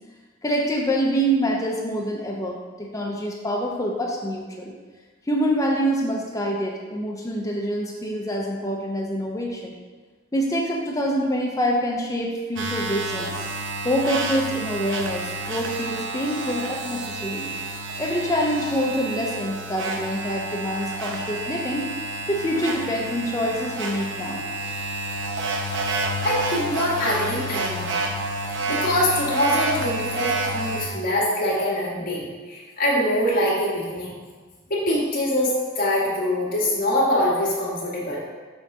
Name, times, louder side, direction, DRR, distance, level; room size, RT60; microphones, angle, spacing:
voice 1, 0.4-4.7 5.3-9.8 10.3-13.3 13.8-21.9 22.3-24.4, equal, 15° left, -1 dB, 0.7 m, -26 dB
sound 1, 12.6-30.9, right 2 dB, 60° right, 0.7 m, -29 dB
voice 2, 26.2-28.0 28.7-34.1 34.7-38.2, left 1 dB, 45° left, -6 dB, 2.0 m, -24 dB
6.4 x 4.0 x 6.1 m, 1.4 s
head